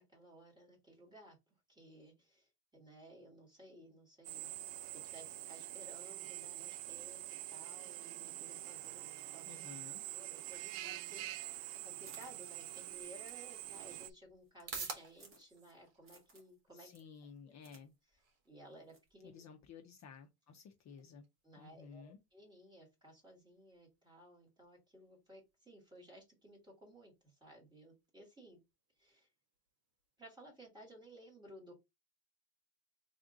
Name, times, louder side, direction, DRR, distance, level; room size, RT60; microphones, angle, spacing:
voice 1, 0.0-1.4 1.7-4.6 4.9-7.2 7.5-9.6 10.1-11.6 11.8-16.9 17.4-17.5 18.5-19.4 21.4-28.6 29.0-29.3 30.2-31.7, right 1 dB, 10° right, 1.9 m, -58 dB
Drill, 4.2-14.1, right 16 dB, 80° right, 0.5 m, -46 dB
voice 2, 9.5-10.0 16.7-17.9 19.2-21.2 21.6-22.2, left 6 dB, 40° left, 0.6 m, -54 dB
sound 1, 12.0-15.7 16.0-16.5 16.9-17.8 18.1-18.2 18.9-19.1, right 2 dB, 30° right, 1.5 m, -62 dB
sound 2, 14.1-30.2, right 5 dB, 55° right, 1.4 m, -56 dB
3.5 x 2.6 x 3.7 m
cardioid pair, 145°, 45 cm